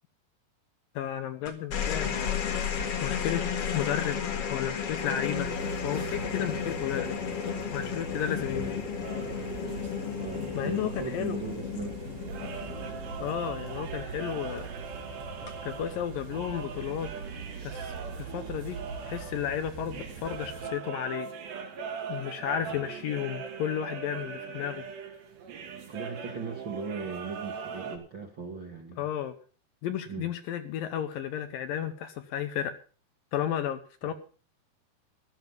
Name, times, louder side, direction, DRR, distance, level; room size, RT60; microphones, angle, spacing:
voice 1, 1.0-2.4 3.0-3.4 3.7-4.2 4.5-5.5 5.8-7.2 7.7-8.8 10.6-11.4 13.2-14.7 15.6-17.1 17.6-18.8 19.1-21.3 22.1-24.9 29.0-29.4 29.8-32.7 33.3-34.1, left 10 dB, 70° left, 9 dB, 2.4 m, -33 dB
sound 1, 1.5-14.1 15.3-15.7, left 7 dB, 50° left, 2.0 m, -33 dB
sound 2, 5.3-20.7, right 5 dB, 70° right, 4.7 m, -42 dB
voice 2, 8.4-8.8 10.1-12.0 12.8-13.0 22.6-22.8 25.9-29.1 30.1-30.3 34.0-34.1, right 5 dB, 45° right, 2 dB, 1.7 m, -38 dB
sound 3, 9.0-28.0, right 6 dB, 90° right, 4.3 m, -41 dB
13.5 x 13.0 x 5.4 m, 0.38 s
omnidirectional pair, 4.6 m